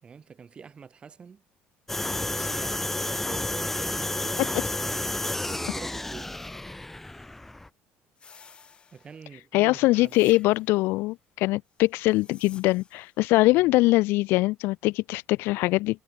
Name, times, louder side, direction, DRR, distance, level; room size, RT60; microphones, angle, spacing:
voice 1, 0.0-1.4 2.3-6.4 7.1-7.3 8.9-10.2 13.5-13.8, right 6 dB, 25° right, 5.3 m, -45 dB
sound 1, 1.9-7.7, left 2 dB, 5° left, 0.7 m, -31 dB
sound 2, 8.2-9.4 10.0-10.9 11.9-13.1, left 6 dB, 25° left, 4.4 m, -53 dB
voice 2, 9.5-16.0, left 20 dB, 70° left, 0.4 m, -22 dB
cardioid pair, 150°, 4 cm